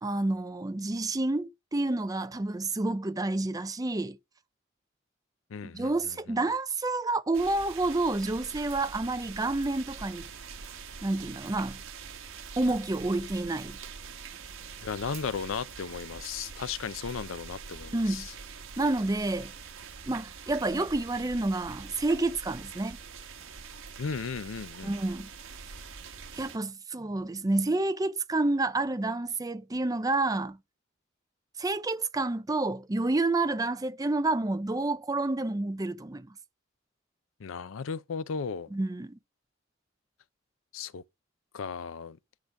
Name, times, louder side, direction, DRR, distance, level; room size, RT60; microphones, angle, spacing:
voice 1, 0.0-4.2 5.7-10.2 11.0-11.8 12.6-13.8 17.9-18.3 18.8-19.5 20.1-23.0 24.8-25.3 26.4-30.6 31.6-36.3 38.7-39.2, right 2 dB, 20° right, 0.5 m, -29 dB
voice 2, 5.5-5.9 14.8-18.3 24.0-24.9 37.4-38.7 40.7-41.0 41.5-42.2, left 5 dB, 80° left, 0.5 m, -35 dB
sound 1, 7.3-26.6, right 5 dB, 90° right, 1.2 m, -44 dB
10.5 x 5.0 x 5.8 m
head